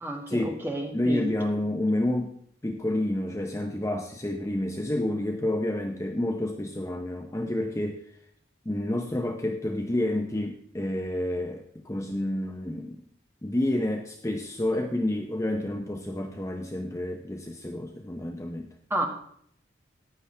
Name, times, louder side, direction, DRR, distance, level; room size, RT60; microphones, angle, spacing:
voice 1, 0.0-1.3 18.9-19.1, right 1 dB, 10° right, 1 dB, 1.6 m, -30 dB
voice 2, 0.9-8.0 8.7-13.0 13.4-18.7, left 1 dB, 15° left, 3 dB, 0.6 m, -29 dB
15.0 x 9.9 x 3.3 m, 0.67 s
head